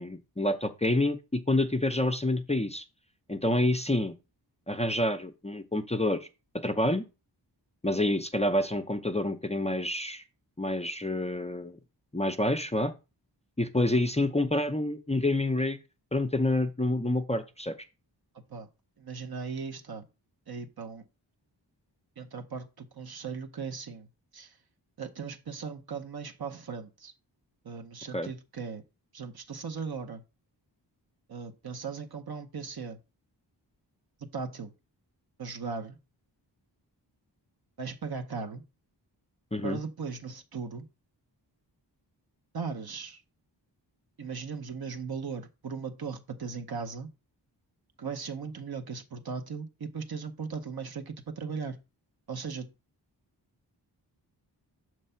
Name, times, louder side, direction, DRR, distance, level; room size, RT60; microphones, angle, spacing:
voice 1, 0.0-2.8 3.3-4.1 4.7-6.3 6.6-7.0 7.8-10.2 10.6-11.8 12.1-12.9 13.6-15.8 16.1-17.7 28.1-28.3 39.5-39.8, left 1 dB, 15° left, 0.5 m, -28 dB
voice 2, 19.0-20.0 20.5-21.0 22.2-24.1 24.3-24.6 25.0-27.1 27.6-28.8 29.1-30.2 31.3-33.0 34.3-34.7 35.4-36.0 37.8-38.6 39.6-40.8 42.5-43.2 44.2-47.1 48.0-51.8 52.3-52.7, right 5 dB, 60° right, 0.9 m, -38 dB
6.7 x 3.2 x 5.5 m
wide cardioid pair, 90°, 43 cm